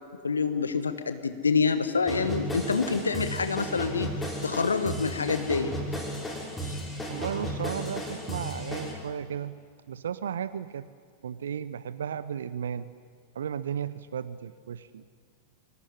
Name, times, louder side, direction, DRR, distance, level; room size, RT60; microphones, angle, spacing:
voice 1, 0.2-4.1 4.4-5.7 6.6-6.8, left 5 dB, 75° left, 10 dB, 1.2 m, -27 dB
sound 1, 2.1-8.9, equal, 10° left, 6.0 m, -34 dB
voice 2, 7.1-9.6 9.9-10.9 11.2-12.9 13.3-15.0, right 8 dB, 65° right, 16 dB, 0.7 m, -34 dB
24.5 x 18.0 x 10.0 m, 2.2 s
figure-of-eight pair, 90°, 0 cm